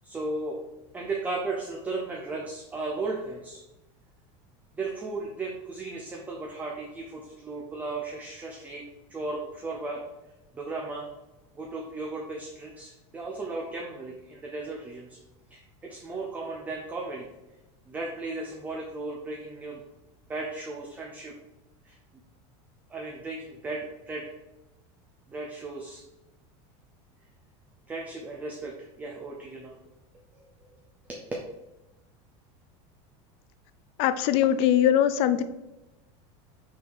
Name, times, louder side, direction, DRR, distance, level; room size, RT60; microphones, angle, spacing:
voice 1, 0.0-0.6 0.9-3.6 4.8-8.8 9.1-10.1 10.5-11.1 11.5-15.2 15.5-17.3 17.9-19.8 20.3-21.3 21.8-22.0 22.9-24.3 25.3-26.0 27.9-29.7 30.3-30.4 31.1-31.2, right 3 dB, 10° right, 0 dB, 0.6 m, -35 dB
voice 2, 34.0-35.4, left 10 dB, 40° left, 13 dB, 0.4 m, -21 dB
5.8 x 4.8 x 4.5 m, 0.99 s
supercardioid pair, 175°, 15 cm